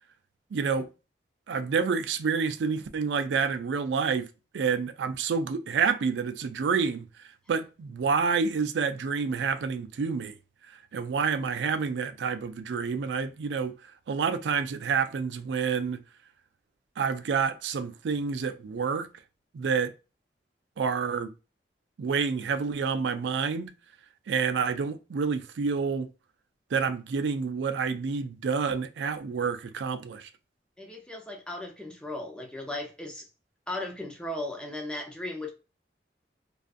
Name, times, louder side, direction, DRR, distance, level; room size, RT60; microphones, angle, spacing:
voice 1, 0.5-0.9 1.5-4.3 4.5-7.1 7.5-10.4 10.9-13.7 14.1-16.0 17.0-19.1 19.5-19.9 20.8-21.3 22.0-23.7 24.3-26.1 26.7-30.3, right 5 dB, 80° right, 0.4 m, -28 dB
voice 2, 30.8-33.2 33.7-35.5, left 1 dB, 5° left, 0.5 m, -36 dB
2.5 x 2.4 x 2.4 m
head